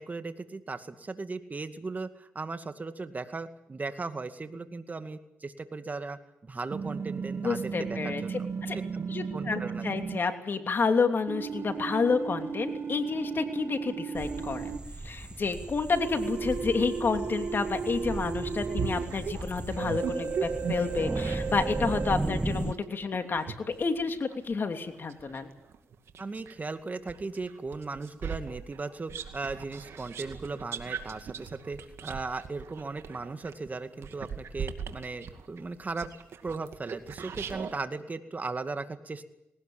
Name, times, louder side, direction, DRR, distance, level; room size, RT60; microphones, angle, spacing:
voice 1, 0.0-8.5 8.9-9.0 9.3-9.9 26.2-36.1 36.4-39.3, right 3 dB, 35° right, 9 dB, 2.2 m, -37 dB
sound 1, 6.7-10.2 11.3-14.8 15.9-19.1 19.8-22.2, right 5 dB, 60° right, 1.7 m, -35 dB
voice 2, 7.4-8.4 8.7-8.8 9.1-14.8 15.0-25.5, left 4 dB, 50° left, 6 dB, 3.0 m, -30 dB
sound 2, 14.2-22.7, right 2 dB, 20° right, 1.0 m, -36 dB
sound 3, 18.7-21.7 22.2-26.6 27.1-37.8, right 6 dB, 75° right, 2.2 m, -39 dB
19.5 x 18.5 x 9.0 m, 0.85 s
cardioid pair, 55°, 5 cm